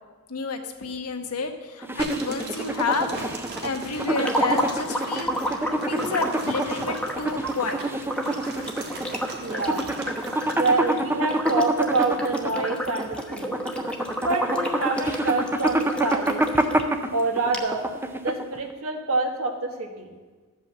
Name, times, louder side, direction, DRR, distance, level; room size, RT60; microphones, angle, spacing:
voice 1, 0.3-3.2 3.6-7.8, left 4 dB, 85° left, 5 dB, 1.1 m, -30 dB
sound 1, 1.8-18.7, right 1 dB, 10° right, 0.6 m, -27 dB
sound 2, 2.0-10.8, right 3 dB, 50° right, 1.5 m, -39 dB
sound 3, 4.1-16.8 17.2-17.3 17.5-17.6, equal, 5° left, 1.0 m, -31 dB
voice 2, 9.4-9.9 10.6-13.6 14.2-16.5 17.1-17.8 18.2-20.1, right 3 dB, 70° right, 3 dB, 1.5 m, -26 dB
12.0 x 5.5 x 7.2 m, 1.4 s
head